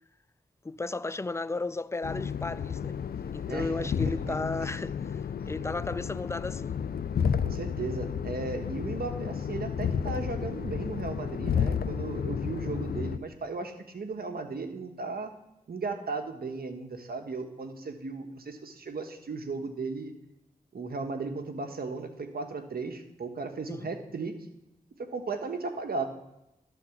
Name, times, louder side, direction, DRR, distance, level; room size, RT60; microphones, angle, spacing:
voice 1, 0.6-3.0 3.3-6.8 23.7-23.9, left 3 dB, 15° left, 0.4 m, -34 dB
sound 1, 2.0-13.2, left 7 dB, 75° left, 0.4 m, -32 dB
voice 2, 3.5-4.4 7.4-15.3 15.7-20.1 20.7-24.3 25.1-26.0, right 4 dB, 75° right, 1.2 m, -36 dB
12.0 x 4.2 x 7.0 m
cardioid pair, 50°, 16 cm